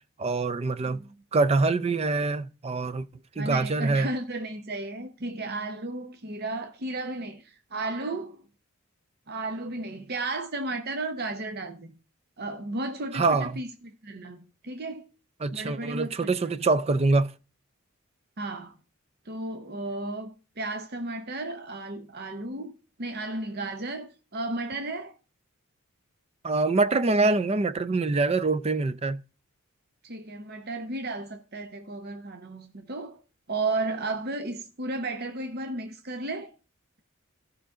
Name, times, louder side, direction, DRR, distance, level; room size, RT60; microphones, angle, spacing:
voice 1, 0.2-1.0 1.3-3.1 3.4-4.1 13.1-13.6 15.4-17.3 26.4-29.2, right 3 dB, 30° right, 0.4 m, -24 dB
voice 2, 3.4-8.4 9.3-11.9 12.4-15.0 15.5-16.6 18.4-18.7 19.2-22.7 23.0-25.1 30.0-33.2 33.5-36.5, right 2 dB, 50° right, 1.0 m, -34 dB
15.5 x 5.7 x 3.7 m
head